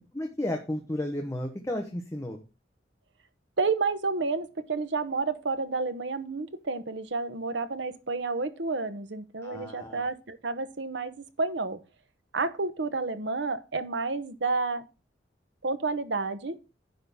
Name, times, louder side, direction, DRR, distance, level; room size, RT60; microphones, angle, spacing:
voice 1, 0.1-2.4 9.4-10.0, left 1 dB, 15° left, 1.1 m, -33 dB
voice 2, 3.6-11.8 12.3-14.9 15.6-16.6, right 3 dB, 80° right, 1.0 m, -30 dB
10.5 x 3.9 x 7.0 m
head